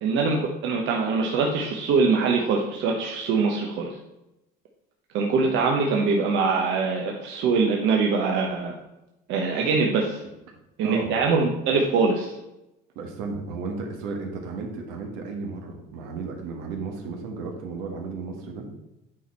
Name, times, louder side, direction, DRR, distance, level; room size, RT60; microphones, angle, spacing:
voice 1, 0.0-4.0 5.1-8.7 9.3-10.2 10.8-12.4, right 4 dB, 65° right, 0 dB, 1.0 m, -23 dB
voice 2, 10.8-11.1 12.9-18.7, right 4 dB, 85° right, 2 dB, 1.6 m, -34 dB
9.0 x 4.3 x 4.3 m, 0.93 s
cardioid pair, 110°, 20 cm